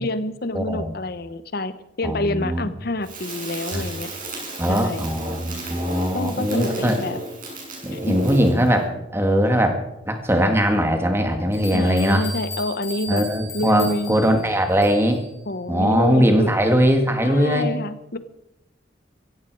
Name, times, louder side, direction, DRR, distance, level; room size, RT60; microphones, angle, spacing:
voice 1, 0.0-4.1 4.7-5.1 6.1-7.2 7.9-8.2 11.7-13.2 13.5-14.2 15.5-16.5 17.2-18.2, left 1 dB, 50° left, 13 dB, 0.9 m, -27 dB
voice 2, 0.5-0.9 2.0-2.6 3.7-3.8 4.6-7.0 7.8-9.8 10.1-12.3 13.1-15.2 15.7-17.7, equal, 10° right, 5 dB, 1.8 m, -20 dB
Crackle, 3.0-8.7, right 1 dB, 45° right, 6.0 m, -33 dB
sound 1, 11.5-15.2, left 1 dB, 20° left, 5.9 m, -36 dB
16.0 x 15.5 x 4.7 m, 0.89 s
head